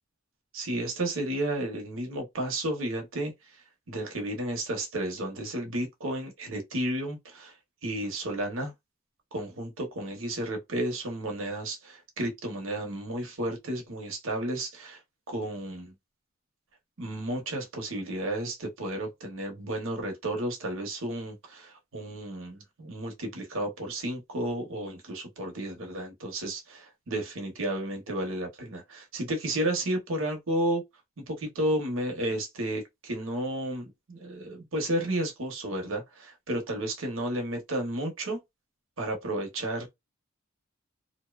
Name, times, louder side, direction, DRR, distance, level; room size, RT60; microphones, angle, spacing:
voice 1, 0.5-3.3 3.9-7.5 7.8-8.7 9.3-15.0 15.3-15.9 17.0-30.8 31.2-38.4 39.0-39.9, right 1 dB, 70° right, 0.9 m, -32 dB
2.7 x 2.1 x 2.3 m
head